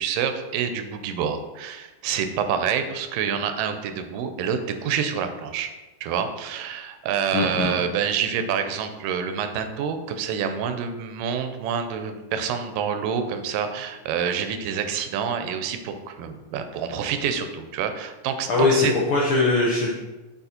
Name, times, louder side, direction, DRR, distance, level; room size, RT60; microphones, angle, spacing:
voice 1, 0.0-5.7 6.0-18.9, right 7 dB, 90° right, 8 dB, 2.3 m, -27 dB
voice 2, 7.3-7.7 18.5-19.9, left 3 dB, 85° left, -3 dB, 1.1 m, -21 dB
8.2 x 4.1 x 4.3 m, 1.2 s
omnidirectional pair, 3.8 m